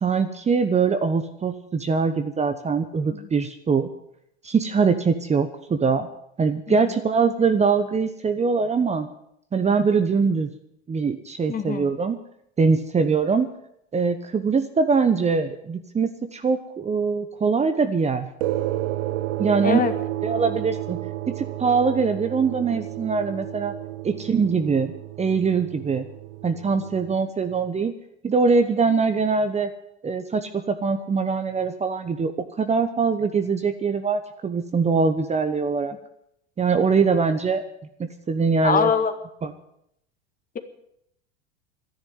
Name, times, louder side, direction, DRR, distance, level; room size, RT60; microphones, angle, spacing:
voice 1, 0.0-3.9 4.4-6.1 6.4-9.1 9.5-10.5 10.9-12.2 12.6-13.5 13.9-18.3 19.4-19.8 20.2-21.0 21.3-23.7 24.0-26.0 26.4-27.9 28.2-29.7 30.0-32.3 32.6-35.9 36.6-37.6 38.0-38.9 39.4-39.5, right 5 dB, 20° right, 9 dB, 1.1 m, -22 dB
voice 2, 11.5-11.9 19.6-19.9 38.6-39.1, left 6 dB, 25° left, 8 dB, 1.8 m, -23 dB
sound 1, 18.4-27.1, right 15 dB, 70° right, 1.1 m, -31 dB
12.5 x 11.0 x 9.5 m, 0.75 s
hypercardioid pair, 95°, 33 cm